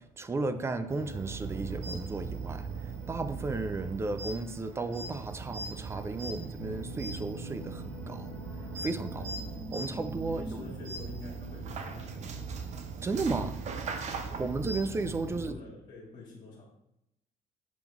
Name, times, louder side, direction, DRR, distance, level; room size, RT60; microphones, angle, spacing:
voice 1, 0.0-8.3 8.8-9.3 9.7-10.8 13.0-13.6 14.4-15.6, right 3 dB, 15° right, 0.3 m, -34 dB
sound 1, 0.6-10.7, equal, 15° left, 1.4 m, -50 dB
sound 2, 0.9-15.5, right 4 dB, 45° right, 0.7 m, -39 dB
sound 3, 6.6-13.8, left 1 dB, 75° left, 0.6 m, -48 dB
voice 2, 10.2-12.5 14.2-14.4 15.3-16.6, left 3 dB, 35° left, 1.6 m, -47 dB
7.0 x 3.8 x 4.6 m
cardioid pair, 165°, 17 cm